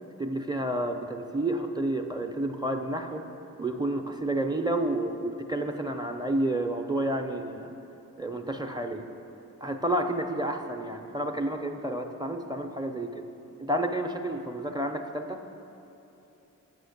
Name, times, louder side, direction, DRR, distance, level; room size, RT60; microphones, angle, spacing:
voice 1, 0.2-3.2 3.6-7.7 8.2-9.1 9.6-13.2 13.6-15.4, right 1 dB, 10° right, 5 dB, 0.6 m, -30 dB
6.5 x 6.2 x 6.5 m, 2.9 s
cardioid pair, 50°, 33 cm